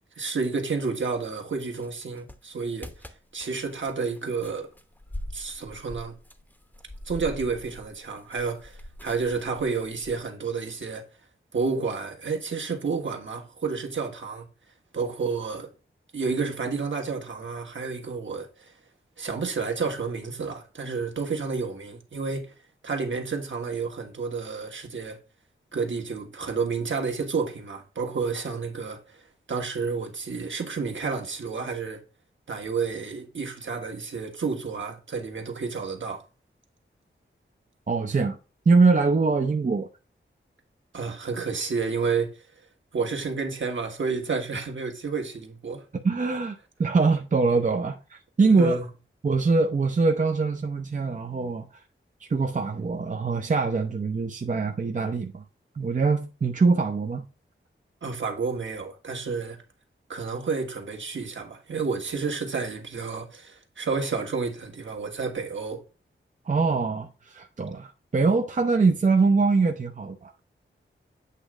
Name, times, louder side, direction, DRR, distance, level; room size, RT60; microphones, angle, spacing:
voice 1, 0.2-2.9 3.3-4.7 5.3-6.1 7.0-11.0 11.5-14.5 14.9-15.7 16.1-18.7 19.2-22.5 22.8-25.2 25.7-29.2 29.5-32.0 32.5-36.2 40.9-42.3 42.9-45.8 48.4-48.9 58.0-59.6 60.1-65.8, right 4 dB, 65° right, 1.5 m, -30 dB
sound 1, 1.8-10.2, left 1 dB, 10° left, 0.8 m, -43 dB
voice 2, 37.9-38.4 38.7-39.9 46.0-48.8 49.2-51.7 52.3-55.4 55.8-57.3 66.5-70.3, right 4 dB, 40° right, 0.6 m, -23 dB
8.3 x 3.1 x 4.9 m
wide cardioid pair, 90°, 21 cm